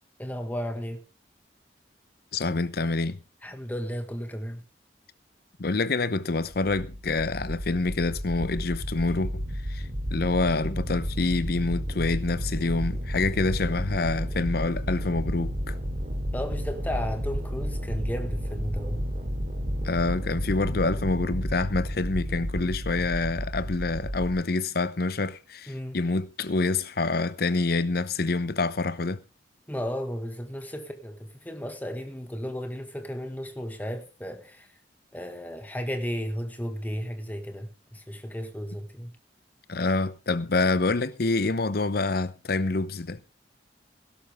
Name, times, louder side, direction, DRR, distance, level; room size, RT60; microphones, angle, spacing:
voice 1, 0.2-1.0 3.4-4.6 16.3-19.0 25.7-26.0 29.7-34.7 35.1-39.1, equal, 10° left, 1.8 m, -34 dB
voice 2, 2.3-3.2 5.6-15.7 19.8-29.2 39.7-43.2, left 3 dB, 60° left, 0.8 m, -27 dB
sound 1, 6.5-24.3, equal, 40° right, 3.6 m, -32 dB
17.5 x 11.5 x 3.5 m
head